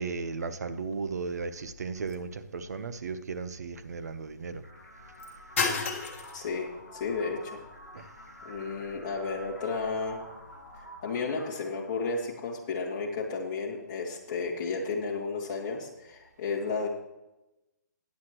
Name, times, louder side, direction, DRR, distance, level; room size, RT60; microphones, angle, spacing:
voice 1, 0.0-4.6 7.9-8.0, right 4 dB, 60° right, 11 dB, 0.9 m, -35 dB
sound 1, 0.8-10.9, left 5 dB, 45° left, 1.6 m, -39 dB
sound 2, 4.6-12.6, equal, 15° right, 4.6 m, -49 dB
voice 2, 6.3-7.6 8.4-10.3 10.8-16.9, left 4 dB, 20° left, -3 dB, 2.1 m, -33 dB
15.5 x 9.6 x 3.1 m, 0.97 s
hypercardioid pair, 170°, 10 cm